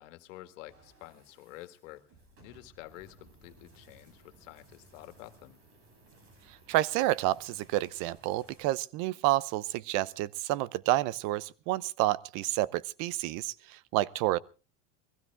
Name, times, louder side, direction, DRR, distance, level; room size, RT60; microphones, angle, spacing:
voice 1, 0.0-2.0 2.4-5.6, left 16 dB, 85° left, 2.0 m, -49 dB
sound 1, 0.7-8.6, right 2 dB, 40° right, 7.4 m, -59 dB
voice 2, 6.7-13.5 13.9-14.4, right 16 dB, 60° right, 0.8 m, -29 dB
21.5 x 15.5 x 3.5 m
supercardioid pair, 135°, 37 cm